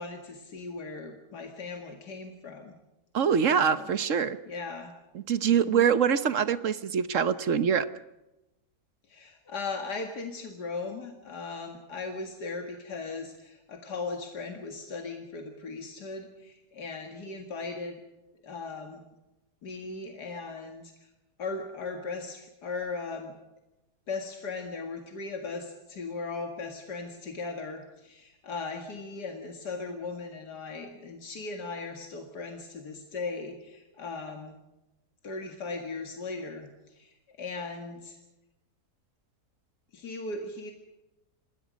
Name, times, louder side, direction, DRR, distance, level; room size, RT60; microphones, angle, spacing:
voice 1, 0.0-2.7 3.4-3.9 4.5-4.9 5.4-5.9 9.1-18.0 18.4-19.0 19.6-21.1 21.4-23.3 24.1-34.6 35.2-38.2 39.9-40.7, left 4 dB, 90° left, 4 dB, 2.5 m, -38 dB
voice 2, 3.1-4.4 5.1-7.9, right 7 dB, 55° right, 13 dB, 1.2 m, -24 dB
28.0 x 20.5 x 5.2 m, 0.95 s
omnidirectional pair, 1.7 m